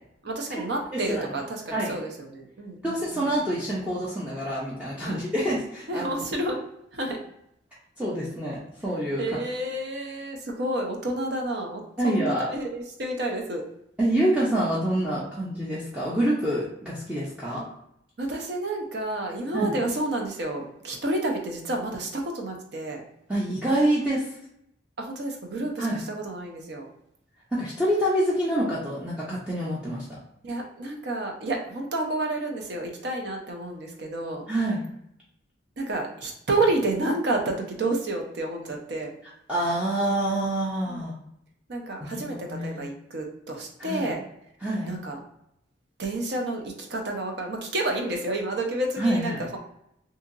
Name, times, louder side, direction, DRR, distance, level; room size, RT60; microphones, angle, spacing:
voice 1, 0.2-3.3 5.0-5.2 5.9-6.6 6.9-7.2 9.2-13.6 18.2-23.0 25.0-26.9 30.4-34.5 35.8-39.1 40.9-41.0 41.7-44.2 44.9-45.2 46.0-49.5, right 2 dB, 60° right, 2 dB, 0.6 m, -30 dB
voice 2, 0.9-1.3 1.7-2.0 2.8-6.1 8.0-9.4 12.0-12.5 14.0-17.6 19.5-19.7 23.3-24.2 25.8-26.0 27.5-30.2 34.5-34.8 39.5-41.1 42.0-42.8 43.8-44.1 44.6-44.9 49.0-49.4, right 1 dB, 5° right, -7 dB, 0.5 m, -26 dB
2.8 x 2.7 x 2.5 m, 0.77 s
head